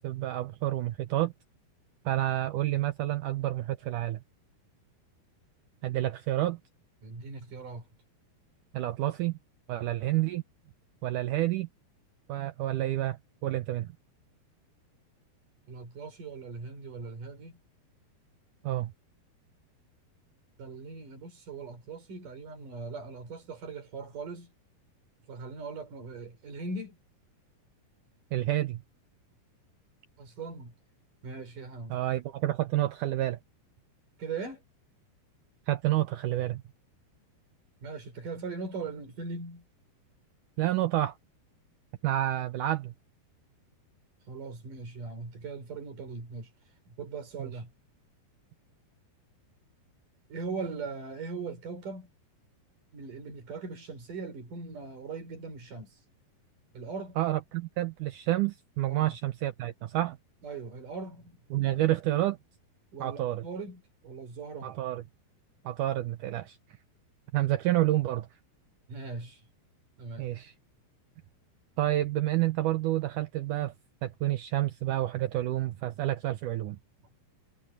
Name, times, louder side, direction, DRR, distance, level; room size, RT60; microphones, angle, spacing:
voice 1, 0.0-1.3 2.1-4.2 5.8-6.6 8.7-9.4 9.7-10.4 11.0-11.7 12.3-13.9 18.6-18.9 28.3-28.8 31.9-33.4 35.7-36.6 40.6-41.2 42.0-42.9 47.4-47.5 57.2-60.2 61.5-62.4 63.0-63.4 64.6-65.0 65.7-66.6 67.3-68.3 70.2-70.5 71.8-73.7 74.0-76.8, right 15 dB, 85° right, 1.8 m, -29 dB
voice 2, 7.0-7.9 15.7-17.5 20.6-24.5 25.3-27.0 30.2-30.7 31.2-32.0 34.2-34.6 37.8-39.6 44.3-46.5 46.9-47.7 50.3-52.1 52.9-55.9 56.7-57.2 58.9-59.2 60.4-61.4 62.9-64.8 68.9-69.5 70.0-70.3, right 4 dB, 50° right, 5.9 m, -40 dB
omnidirectional pair, 4.7 m